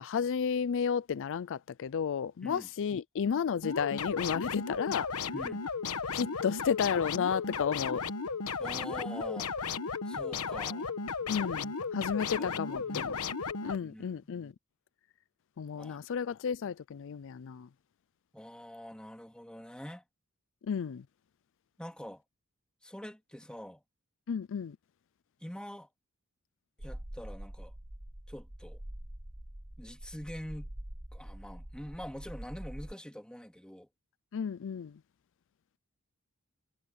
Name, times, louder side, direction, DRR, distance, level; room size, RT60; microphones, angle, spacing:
voice 1, 0.0-5.1 6.1-8.0 11.3-13.1 13.6-14.5 15.6-17.7 20.7-21.0 24.3-24.8 34.3-34.9, left 7 dB, 60° left, 0.4 m, -32 dB
sound 1, 3.6-13.8, left 5 dB, 85° left, 1.2 m, -35 dB
voice 2, 5.3-5.7 8.6-9.5 10.0-10.9 12.4-13.1 13.8-14.3 15.8-16.0 18.3-20.0 21.8-22.2 22.8-23.8 25.4-25.9 26.8-27.7 28.3-28.8 29.8-30.7 31.1-33.9, equal, 5° left, 2.6 m, -45 dB
sound 2, 26.8-32.9, right 1 dB, 15° right, 0.9 m, -45 dB
head